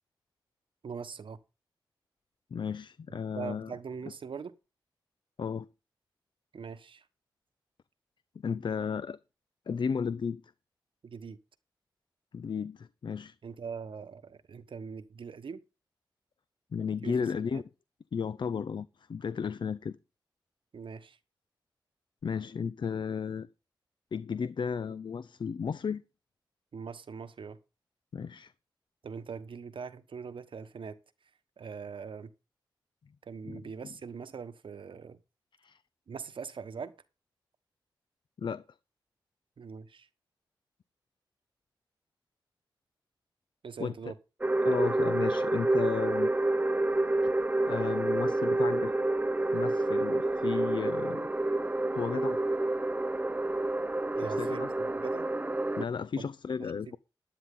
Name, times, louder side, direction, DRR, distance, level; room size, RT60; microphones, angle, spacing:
voice 1, 0.8-1.4 3.3-4.5 6.5-7.0 11.0-11.4 13.4-15.6 17.0-17.2 17.5-17.6 20.7-21.2 26.7-27.6 29.0-31.0 31.6-32.3 33.2-35.2 36.1-36.9 39.6-40.1 43.6-44.1 54.2-55.3 56.2-56.3 56.6-56.7, right 6 dB, 75° right, 1.2 m, -42 dB
voice 2, 2.5-3.7 5.4-5.7 8.4-9.2 9.7-10.4 12.3-13.3 16.7-17.6 18.1-20.0 22.2-23.5 24.1-26.0 28.1-28.5 33.4-33.6 35.6-35.8 38.4-38.6 43.8-44.0 44.6-46.3 47.7-48.9 49.5-51.3 51.9-52.4 54.2-54.7 55.8-57.0, left 6 dB, 65° left, 0.5 m, -34 dB
sound 1, 44.4-55.8, right 2 dB, 20° right, 0.6 m, -28 dB
12.0 x 10.0 x 3.8 m
cardioid pair, 50°, 9 cm